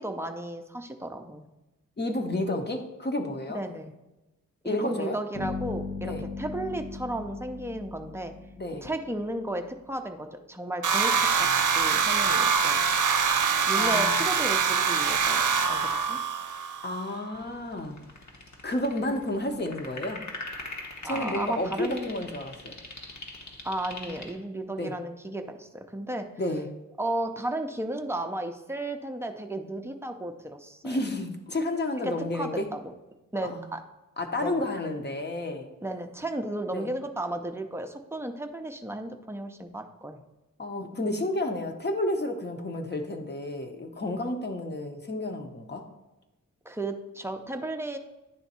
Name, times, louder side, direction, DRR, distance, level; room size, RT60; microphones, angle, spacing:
voice 1, 0.0-1.5 3.5-3.9 4.6-8.3 8.8-12.8 13.7-16.2 21.0-22.2 23.6-26.3 27.0-31.0 32.0-32.9 33.3-33.8 34.4-34.6 35.8-40.2 46.7-48.0, right 1 dB, 10° right, 5 dB, 0.5 m, -34 dB
voice 2, 2.0-3.6 4.6-5.2 6.0-6.2 8.5-8.9 13.8-14.2 16.8-18.0 18.6-20.2 21.0-22.8 24.8-24.9 26.4-26.7 30.8-32.7 33.4-33.6 34.2-35.7 36.7-36.9 40.6-45.8, left 1 dB, 30° left, 4 dB, 0.8 m, -31 dB
sound 1, 5.3-9.3, left 4 dB, 90° left, 1.4 m, -37 dB
sound 2, 10.8-17.0, right 6 dB, 65° right, 0.6 m, -24 dB
sound 3, 17.3-24.3, left 2 dB, 55° left, 1.1 m, -42 dB
10.0 x 3.5 x 4.2 m, 1.0 s
wide cardioid pair, 135°, 34 cm